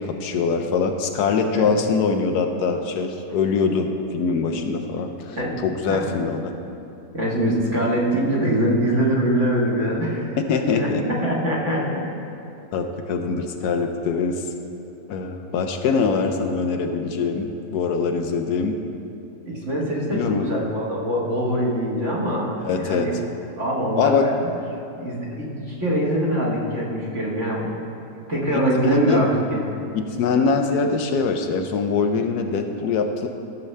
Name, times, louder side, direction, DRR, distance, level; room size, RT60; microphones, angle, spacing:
voice 1, 0.0-6.5 10.5-11.0 12.7-14.4 15.1-18.8 20.1-20.5 22.6-23.1 24.0-24.3 28.5-29.3 29.9-33.3, left 5 dB, 80° left, 5 dB, 1.2 m, -23 dB
voice 2, 7.1-12.1 19.5-23.2 23.6-24.3 25.0-27.7 28.3-29.6, right 1 dB, 50° right, -5 dB, 1.9 m, -23 dB
14.5 x 6.8 x 3.3 m, 2.8 s
omnidirectional pair, 1.7 m